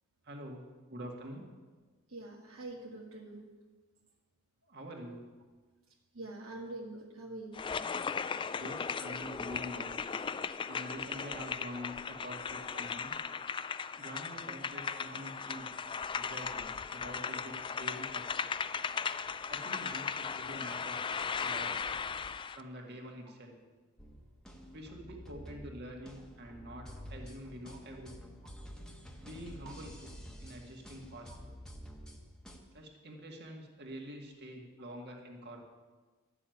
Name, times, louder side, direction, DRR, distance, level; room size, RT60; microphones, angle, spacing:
voice 1, 0.2-1.4 4.6-5.3 8.6-10.0 10.7-13.2 14.0-15.7 16.1-18.4 19.5-21.0 21.4-21.8 22.5-23.6 24.7-28.2 29.2-30.1 30.4-31.3 32.7-35.6, equal, 50° right, 1 dB, 1.9 m, -46 dB
voice 2, 2.1-3.5 6.1-7.6 14.3-14.4 15.1-15.2 20.8-20.9 29.6-29.7, right 2 dB, 65° right, -2 dB, 1.6 m, -45 dB
sound 1, 7.5-22.6, left 6 dB, 20° left, 0.3 m, -37 dB
sound 2, 24.0-32.6, equal, 5° left, 1.3 m, -49 dB
12.0 x 6.8 x 9.2 m, 1.3 s
head